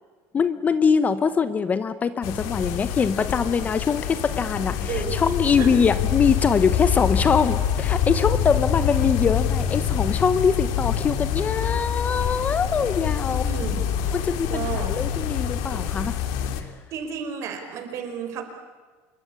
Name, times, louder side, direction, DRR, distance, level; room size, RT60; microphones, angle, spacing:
voice 1, 0.3-13.4 14.1-16.2 16.6-16.7, left 6 dB, 20° left, 12 dB, 1.0 m, -23 dB
sound 1, 2.2-16.6, left 8 dB, 70° left, 2.8 m, -26 dB
voice 2, 4.9-5.8 13.3-13.8 14.5-14.9 16.9-18.4, right 7 dB, 45° right, 6 dB, 4.8 m, -32 dB
27.0 x 23.0 x 8.5 m, 1.4 s
cardioid pair, 150°, 7 cm